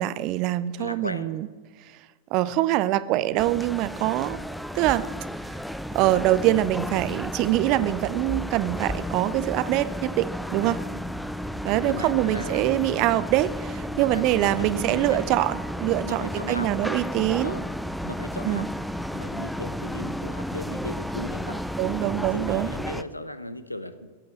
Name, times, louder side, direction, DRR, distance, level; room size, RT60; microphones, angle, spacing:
voice 1, 0.0-1.5 2.3-4.4 4.7-5.1 5.9-10.8 11.6-17.6 18.4-18.7 21.8-22.7, right 15 dB, 40° right, 17 dB, 0.6 m, -24 dB
voice 2, 0.8-1.3 10.6-10.8 11.8-12.7 13.9-14.2 14.6-15.4 16.0-16.7 17.4-17.6 18.0-18.6 19.1-21.6 22.2-24.1, left 1 dB, 85° left, 13 dB, 0.9 m, -37 dB
sound 1, 3.4-23.0, equal, ahead, 0.5 m, -33 dB
15.0 x 8.8 x 7.7 m, 1.4 s
figure-of-eight pair, 90°, 0 cm